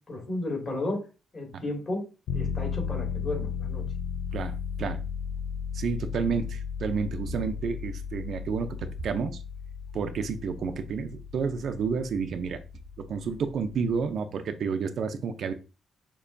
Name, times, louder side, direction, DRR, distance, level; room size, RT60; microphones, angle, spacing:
voice 1, 0.1-1.0 1.3-2.1 2.3-3.8, left 2 dB, 35° left, -1 dB, 2.3 m, -33 dB
sound 1, 2.3-14.1, left 7 dB, 90° left, 0.4 m, -35 dB
voice 2, 4.3-5.0 5.7-8.8 9.0-9.4 9.9-12.6 13.1-15.5, right 6 dB, 55° right, 8 dB, 0.5 m, -30 dB
6.6 x 2.9 x 2.6 m, 0.31 s
cardioid pair, 135°, 0 cm